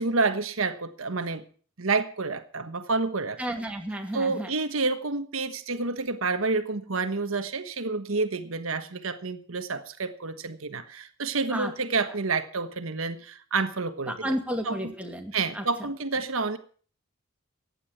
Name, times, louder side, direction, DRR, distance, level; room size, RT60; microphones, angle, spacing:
voice 1, 0.0-1.4 1.8-3.4 4.1-14.3 14.7-14.8 15.3-16.6, right 3 dB, 80° right, 10 dB, 1.3 m, -29 dB
voice 2, 3.4-4.5 11.5-11.7 14.1-15.7, equal, 5° right, 2 dB, 2.3 m, -32 dB
15.5 x 9.9 x 6.0 m, 0.42 s
head